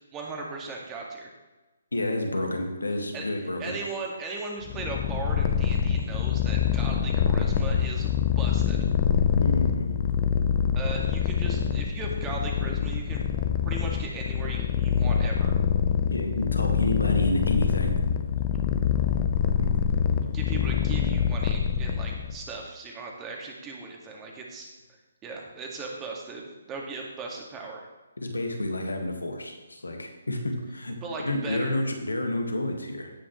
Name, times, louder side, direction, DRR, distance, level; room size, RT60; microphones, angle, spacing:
voice 1, 0.1-1.3 3.1-8.8 10.8-15.6 20.3-24.7 25.2-27.9 31.0-31.8, right 3 dB, 20° right, 0 dB, 1.9 m, -38 dB
voice 2, 1.9-3.7 9.3-10.1 16.1-18.0 19.6-19.7 28.2-31.0 31.2-33.1, left 1 dB, 85° left, 3 dB, 1.8 m, -29 dB
Purr, 4.7-22.4, left 8 dB, 35° left, 0.7 m, -25 dB
17.0 x 6.2 x 3.2 m, 1.1 s
figure-of-eight pair, 140°, 0 cm